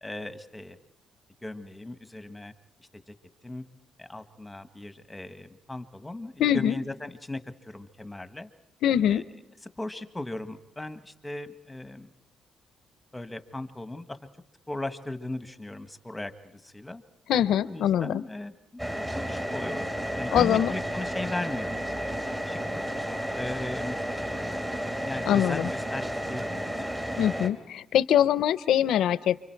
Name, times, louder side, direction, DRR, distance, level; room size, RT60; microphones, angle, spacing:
voice 1, 0.0-0.8 1.4-2.5 2.8-3.1 3.4-3.6 4.0-8.5 9.1-9.2 9.8-12.1 13.1-14.2 14.7-17.0 17.6-19.9 20.2-21.8 22.5-22.8 23.3-24.0 25.0-26.9, left 2 dB, 10° left, 9 dB, 1.4 m, -37 dB
voice 2, 6.4-6.7 8.8-9.2 17.3-18.2 20.3-20.7 25.3-25.7 27.2-29.4, left 10 dB, 80° left, 16 dB, 0.7 m, -23 dB
sound 1, 18.8-27.5, equal, 15° right, 2.8 m, -32 dB
29.0 x 25.0 x 4.6 m, 0.89 s
cardioid pair, 90°, 0 cm